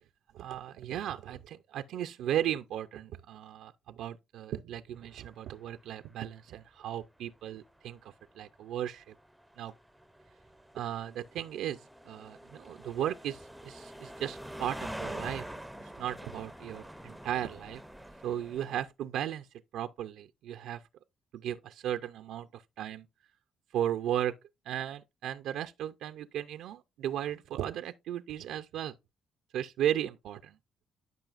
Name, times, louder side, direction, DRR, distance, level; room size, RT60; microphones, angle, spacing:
voice 1, 0.3-9.1 9.6-9.7 10.7-15.5 15.8-17.8 18.2-19.5 19.7-20.8 21.3-23.1 23.7-24.4 24.7-29.0 29.5-30.6, right 11 dB, 85° right, 0.4 m, -36 dB
sound 1, 5.7-5.9 6.2-6.3 7.5-18.8, right 1 dB, ahead, 0.6 m, -46 dB
12.0 x 5.4 x 2.4 m
cardioid pair, 90°, 0 cm